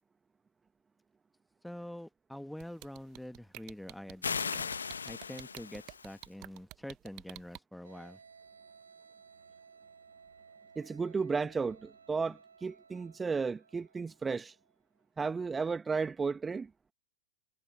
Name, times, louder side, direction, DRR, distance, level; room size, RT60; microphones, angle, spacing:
voice 1, 1.6-4.7 5.0-8.2, left 1 dB, ahead, 1.7 m, -46 dB
sound 1, 2.6-7.6, right 22 dB, 40° right, 1.1 m, -48 dB
sound 2, 4.2-6.3, left 6 dB, 75° left, 1.5 m, -37 dB
sound 3, 7.8-14.8, right 5 dB, 75° right, 7.8 m, -58 dB
voice 2, 10.7-14.5 15.2-16.7, right 5 dB, 15° right, 1.6 m, -33 dB
figure-of-eight pair, 90°, 0 cm